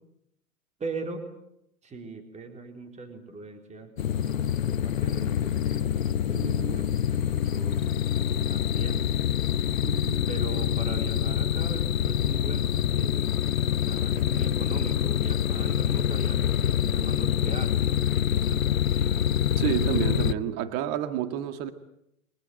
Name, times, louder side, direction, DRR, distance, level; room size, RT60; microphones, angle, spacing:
voice 1, 0.8-1.3 1.8-3.9 4.3-7.8 8.5-9.0 10.3-13.3 13.6-19.2, right 3 dB, 15° right, 5 dB, 4.0 m, -40 dB
sound 1, 4.0-20.3, left 10 dB, 65° left, 1.1 m, -26 dB
voice 2, 6.3-6.8 9.7-10.3 19.6-21.7, right 11 dB, 40° right, 9 dB, 2.1 m, -30 dB
29.0 x 24.0 x 8.0 m, 0.79 s
figure-of-eight pair, 105°, 43 cm